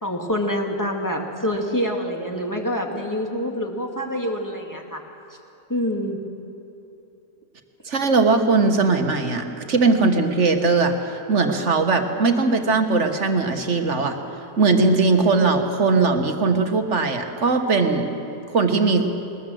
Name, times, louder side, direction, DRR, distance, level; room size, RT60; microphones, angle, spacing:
voice 1, 0.0-5.0 5.7-6.2, equal, 10° left, 1 dB, 2.2 m, -26 dB
voice 2, 7.8-14.2 14.6-18.2 18.5-19.1, right 3 dB, 45° right, 5 dB, 1.6 m, -20 dB
21.0 x 20.0 x 7.7 m, 3.0 s
omnidirectional pair, 1.7 m